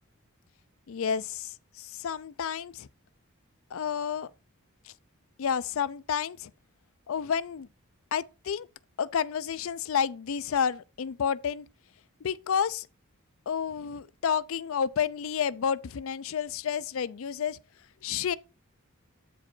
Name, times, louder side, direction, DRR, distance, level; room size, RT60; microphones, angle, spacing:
voice 1, 0.9-2.9 3.7-4.3 4.9-5.0 5.4-6.5 7.1-7.7 8.1-8.7 9.0-11.7 12.2-12.9 13.5-17.6 18.0-18.4, left 7 dB, 65° left, 0.4 m, -30 dB
8.5 x 4.8 x 4.4 m
head